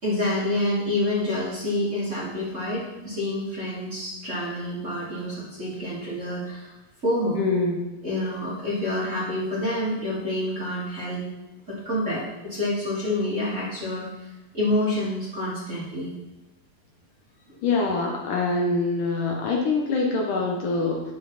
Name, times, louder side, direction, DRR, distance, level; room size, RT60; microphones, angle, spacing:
voice 1, 0.0-6.7 7.0-7.4 8.0-11.2 11.7-14.1 14.5-16.1, left 1 dB, 20° right, -8 dB, 2.5 m, -27 dB
voice 2, 7.4-7.9 17.6-21.0, left 3 dB, 65° left, 0 dB, 2.4 m, -24 dB
12.0 x 9.2 x 4.1 m, 1.0 s
omnidirectional pair, 4.3 m